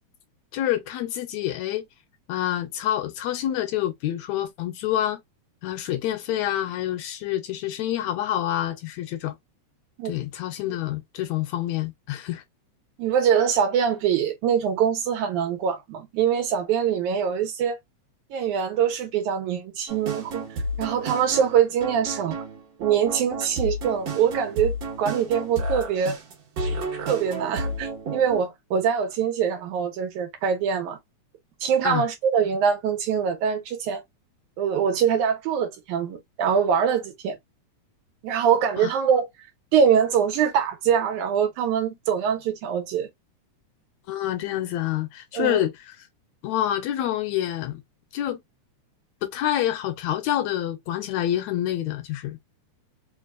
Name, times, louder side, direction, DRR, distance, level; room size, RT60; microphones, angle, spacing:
voice 1, 0.5-1.9 2.3-5.2 5.6-9.4 10.1-12.4 31.8-32.1 38.8-38.9 44.1-45.9 46.4-47.8 48.1-48.4 49.2-52.4, left 12 dB, 75° left, 1.8 m, -27 dB
voice 2, 13.0-17.8 18.3-20.4 20.8-22.4 22.8-26.2 27.0-31.0 31.6-34.0 34.6-37.4 38.2-39.3 39.7-43.1 45.3-45.6, right 7 dB, 85° right, 2.5 m, -23 dB
sound 1, 19.9-28.4, right 1 dB, 60° right, 2.4 m, -32 dB
5.1 x 2.3 x 2.4 m
omnidirectional pair, 3.4 m